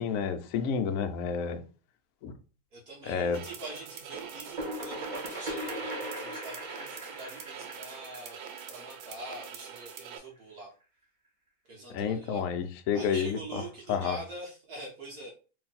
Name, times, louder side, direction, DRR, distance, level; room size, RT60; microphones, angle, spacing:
voice 1, 0.0-1.6 2.2-2.3 3.1-3.4 11.9-13.6 13.9-14.2, left 6 dB, 90° left, 0.7 m, -30 dB
voice 2, 2.7-8.4 8.7-10.7 11.7-12.5 12.9-15.3, right 1 dB, 60° right, 1.3 m, -44 dB
sound 1, 3.3-10.2, right 8 dB, 90° right, 1.3 m, -45 dB
sound 2, 4.1-9.7, right 1 dB, 40° right, 0.7 m, -39 dB
3.1 x 2.6 x 4.0 m
omnidirectional pair, 2.0 m